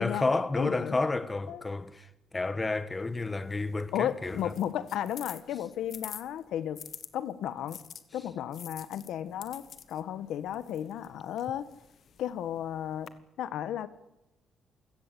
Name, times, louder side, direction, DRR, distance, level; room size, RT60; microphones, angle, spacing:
voice 1, 0.0-4.5, left 3 dB, 20° left, 1.4 m, -31 dB
voice 2, 0.6-1.0 1.5-1.6 3.9-6.8 7.1-7.8 8.1-11.7 12.2-13.1 13.4-13.9, left 10 dB, 80° left, 1.2 m, -34 dB
sound 1, 2.9-7.1 7.7-13.1, left 8 dB, 60° left, 1.7 m, -48 dB
28.0 x 17.0 x 8.4 m
cardioid pair, 90°, 0 cm